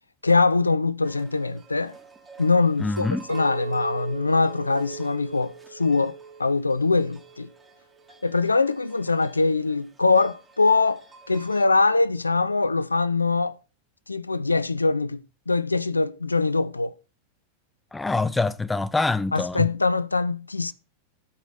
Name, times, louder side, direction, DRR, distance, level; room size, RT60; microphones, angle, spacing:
voice 1, 0.2-1.9 2.4-6.1 6.4-7.5 8.2-13.6 14.1-15.2 15.5-16.9 19.3-20.7, left 3 dB, 80° left, 0.4 m, -23 dB
sound 1, 1.0-11.7, right 4 dB, 15° right, 2.7 m, -51 dB
voice 2, 2.8-3.3 17.9-19.7, left 3 dB, 10° left, 0.6 m, -25 dB
Chink clink, 3.3-7.6 8.1-8.5, right 6 dB, 70° right, 2.3 m, -40 dB
13.0 x 4.9 x 4.0 m
figure-of-eight pair, 90°, 0 cm